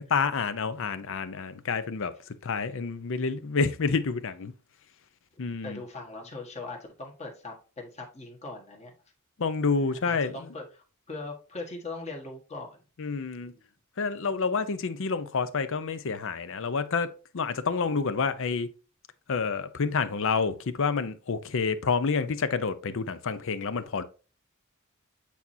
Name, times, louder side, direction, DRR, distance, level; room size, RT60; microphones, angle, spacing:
voice 1, 0.0-2.1 2.4-4.5 5.4-5.8 9.4-10.3 13.0-13.5 14.0-18.7 19.3-24.0, left 5 dB, 65° left, 0.6 m, -28 dB
voice 2, 5.6-8.9 9.9-12.8 13.4-13.6, left 3 dB, 30° left, 1.5 m, -40 dB
8.3 x 4.3 x 2.7 m
head